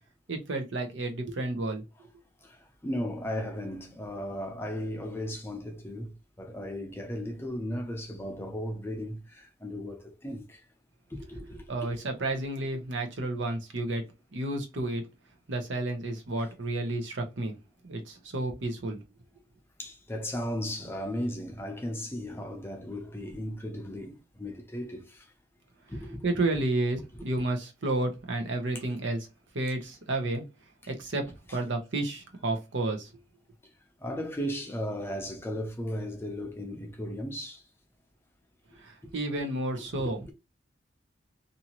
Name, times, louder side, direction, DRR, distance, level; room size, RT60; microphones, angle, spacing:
voice 1, 0.3-1.8 11.7-14.0 14.3-15.1 15.5-17.5 17.8-19.0 26.2-29.3 29.5-30.4 30.9-33.1 38.8-40.3, right 2 dB, 75° right, 0.8 m, -31 dB
voice 2, 2.4-6.1 6.4-10.7 11.1-12.1 16.4-16.5 19.8-25.3 25.9-26.4 27.1-27.2 34.0-37.6 39.0-39.2 40.0-40.1, equal, 10° left, 0.5 m, -36 dB
2.7 x 2.6 x 2.9 m
head